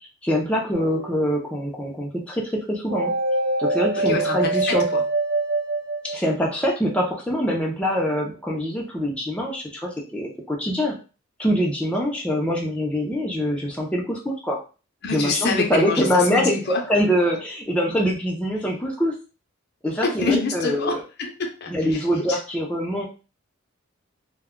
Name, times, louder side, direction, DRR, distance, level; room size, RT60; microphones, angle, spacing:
voice 1, 0.2-3.1 3.6-4.8 6.0-10.9 11.4-14.6 15.1-19.2 19.8-21.0 21.7-23.0, equal, 5° left, -2 dB, 0.5 m, -24 dB
sound 1, 0.7-1.5 2.9-6.7, right 2 dB, 65° right, 0.9 m, -25 dB
voice 2, 4.0-5.0 15.0-16.8 20.0-22.4, left 4 dB, 55° left, 2 dB, 0.6 m, -27 dB
2.2 x 2.1 x 3.5 m, 0.33 s
head